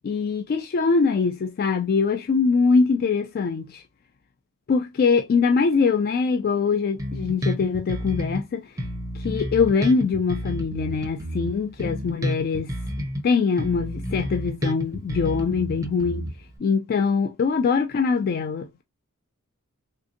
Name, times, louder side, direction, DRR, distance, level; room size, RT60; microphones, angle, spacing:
voice 1, 0.0-3.8 4.7-8.7 9.1-12.8 13.2-16.3 16.6-18.8, left 5 dB, 45° left, 0.3 m, -23 dB
Bass guitar, 7.0-8.4 8.8-13.2 13.6-16.6, equal, 15° right, 0.6 m, -30 dB
3.4 x 2.6 x 2.5 m
head